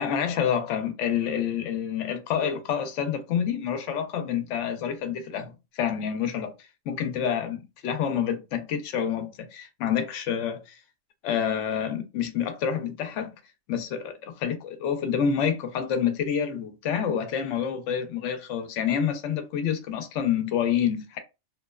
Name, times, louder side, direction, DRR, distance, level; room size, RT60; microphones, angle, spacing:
voice 1, 0.0-6.5 6.9-10.8 11.2-13.3 13.7-21.2, left 8 dB, 85° left, 0.9 m, -28 dB
2.8 x 2.1 x 2.3 m
omnidirectional pair, 1.2 m